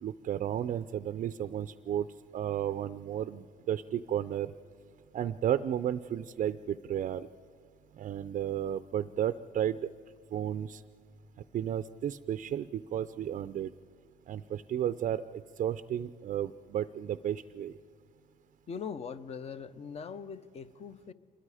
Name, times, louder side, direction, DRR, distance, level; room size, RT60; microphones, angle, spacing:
voice 1, 0.0-2.1 2.3-4.5 5.1-7.3 8.0-9.8 10.3-10.8 11.5-13.7 14.3-17.8, right 10 dB, 45° right, 12 dB, 0.5 m, -33 dB
voice 2, 18.7-21.1, left 6 dB, 40° left, 14 dB, 0.7 m, -41 dB
27.0 x 22.0 x 4.9 m, 2.2 s
cardioid pair, 110°, 17 cm